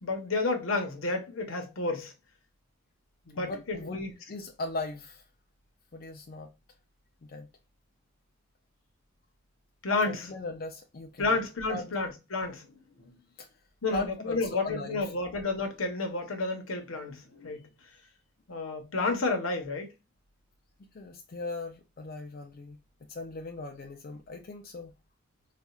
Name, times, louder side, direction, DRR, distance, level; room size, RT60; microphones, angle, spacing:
voice 1, 0.0-2.1 3.3-4.1 9.8-10.3 11.2-12.7 13.0-13.1 13.8-17.7 18.5-19.9, left 3 dB, 75° left, 1.0 m, -31 dB
voice 2, 3.4-4.0 4.3-5.2 5.9-6.5 7.2-7.5 10.1-11.4 11.7-11.9 13.4-13.5 13.9-15.0 20.9-22.8 23.1-24.9, left 2 dB, 45° left, 0.4 m, -38 dB
4.2 x 2.4 x 2.3 m
head